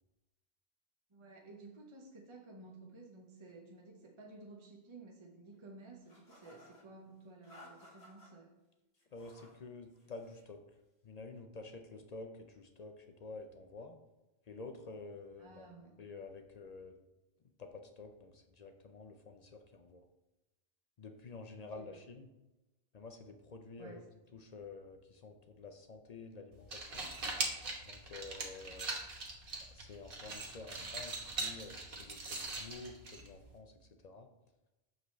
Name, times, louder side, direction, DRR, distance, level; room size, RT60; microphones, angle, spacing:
voice 1, 1.1-8.5 15.4-16.0 21.6-22.0 23.8-24.1, right 3 dB, 30° right, 1 dB, 0.7 m, -54 dB
sound 1, 6.1-6.8 7.4-8.3 8.9-9.6 9.9-10.5, left 1 dB, 90° left, 1.9 m, -59 dB
voice 2, 9.1-10.6 11.0-13.9 14.5-15.7 16.0-16.9 17.6-20.0 21.0-22.3 22.9-24.0 24.3-27.1 27.8-28.9 29.7-34.3, left 3 dB, 50° left, 4 dB, 0.5 m, -50 dB
sound 2, 26.5-33.6, right 3 dB, 60° right, 1.2 m, -41 dB
6.6 x 5.0 x 3.1 m, 0.99 s
omnidirectional pair, 1.1 m